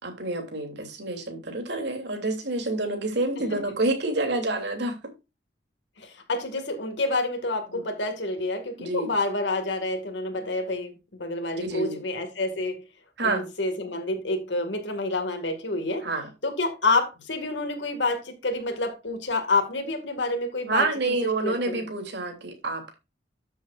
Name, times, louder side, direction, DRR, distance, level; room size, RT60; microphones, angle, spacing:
voice 1, 0.0-5.0 7.7-7.8 8.8-9.1 11.5-12.0 13.2-13.5 16.0-16.3 20.7-22.9, right 2 dB, 70° right, 3.2 m, -28 dB
voice 2, 6.0-12.8 13.2-16.1 16.4-21.1 21.4-21.9, left 2 dB, 75° left, 2.2 m, -28 dB
13.0 x 7.6 x 2.6 m
head